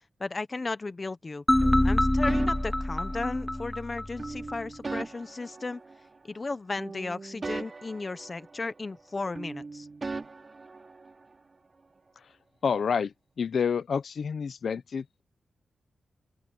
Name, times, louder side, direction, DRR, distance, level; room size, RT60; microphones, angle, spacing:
voice 1, 0.2-1.4 1.8-5.8 6.2-9.9, left 3 dB, 30° left, 0.9 m, -35 dB
sound 1, 1.5-4.6, left 1 dB, 10° left, 0.5 m, -26 dB
sound 2, 1.6-3.6 4.2-6.5 6.8-9.1 9.3-11.4, right 3 dB, 35° right, 5.4 m, -40 dB
voice 2, 12.6-15.2, left 6 dB, 65° left, 1.0 m, -29 dB
open air
cardioid pair, 85°, 0 cm